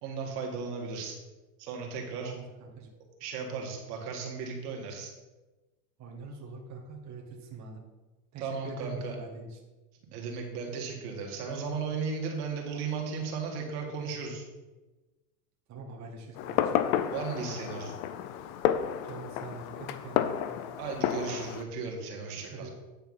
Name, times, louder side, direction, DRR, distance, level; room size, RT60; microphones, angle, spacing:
voice 1, 0.0-1.2 1.6-2.3 3.2-5.1 8.4-9.2 10.1-14.4 17.1-17.9 20.8-22.7, right 5 dB, 70° right, 1 dB, 2.2 m, -35 dB
voice 2, 2.2-2.9 6.0-7.8 8.3-9.6 15.7-16.7 19.0-20.4 22.4-22.7, right 3 dB, 35° right, -1 dB, 1.6 m, -44 dB
Fireworks, 16.4-21.6, left 10 dB, 60° left, 0.8 m, -31 dB
9.3 x 4.5 x 5.6 m, 1.1 s
supercardioid pair, 115°, 48 cm